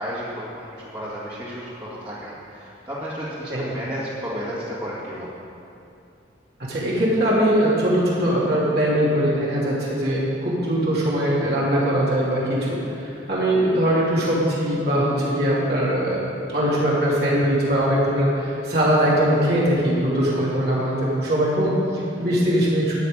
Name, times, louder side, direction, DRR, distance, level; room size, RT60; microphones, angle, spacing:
voice 1, 0.0-5.3 22.2-22.3, equal, 25° right, -9 dB, 2.1 m, -33 dB
voice 2, 6.7-16.2 16.5-22.9, equal, 55° right, -7 dB, 3.1 m, -21 dB
13.0 x 5.8 x 8.8 m, 2.7 s
head